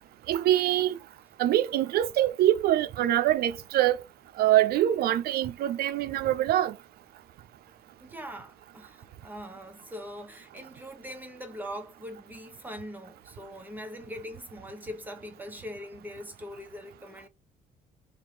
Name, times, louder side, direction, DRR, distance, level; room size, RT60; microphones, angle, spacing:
voice 1, 0.3-1.0 1.4-4.0 4.4-6.8, right 13 dB, 65° right, 0.5 m, -24 dB
voice 2, 8.0-17.3, equal, 10° right, 1.2 m, -42 dB
3.5 x 2.5 x 4.4 m
cardioid pair, 110°, 17 cm